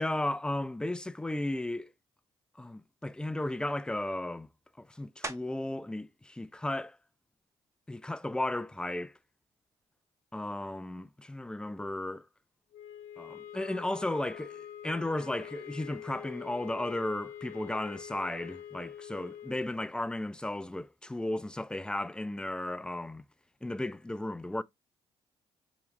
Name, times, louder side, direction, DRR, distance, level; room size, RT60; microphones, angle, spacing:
voice 1, 0.0-1.9 2.6-4.5 4.8-7.0 7.9-9.1 10.3-12.3 13.2-23.2 23.6-24.6, left 1 dB, 5° left, 0.4 m, -35 dB
sound 1, 5.2-5.8 6.4-10.8 11.3-16.5 16.8-22.4, right 2 dB, 25° right, 0.8 m, -52 dB
sound 2, 12.7-19.7, left 10 dB, 90° left, 0.6 m, -45 dB
4.9 x 3.0 x 3.0 m
supercardioid pair, 55°, 12 cm